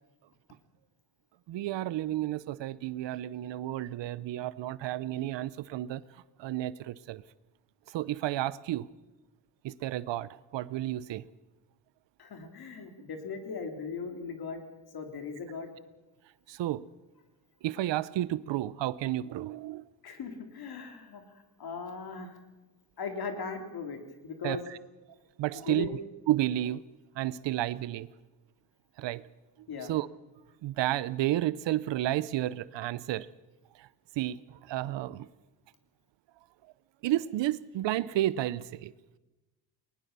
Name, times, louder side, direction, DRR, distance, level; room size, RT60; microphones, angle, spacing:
voice 1, 1.5-6.0 6.4-7.2 7.9-8.9 9.6-11.2 16.5-16.9 17.6-19.8 24.4-24.8 25.4-25.9 26.3-26.8 27.2-28.1 29.0-29.2 29.9-30.1 30.6-33.3 33.8-33.9 34.2-35.3 37.0-38.9, right 14 dB, 75° right, 0.8 m, -31 dB
voice 2, 12.2-14.6 14.9-15.7 20.0-21.2 21.6-22.4 23.0-24.7 25.5-25.9 29.7-29.9, left 5 dB, 55° left, 3.6 m, -38 dB
20.5 x 20.0 x 6.8 m
cardioid pair, 100°, 43 cm